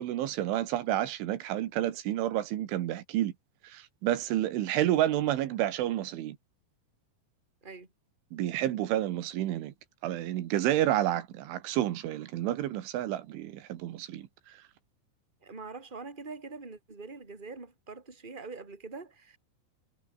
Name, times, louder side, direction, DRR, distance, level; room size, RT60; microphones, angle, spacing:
voice 1, 0.0-3.3 3.6-6.4 8.3-9.7 10.0-14.6, right 13 dB, 80° right, 4.1 m, -30 dB
voice 2, 15.4-19.4, right 4 dB, 10° right, 3.7 m, -44 dB
omnidirectional pair, 5.5 m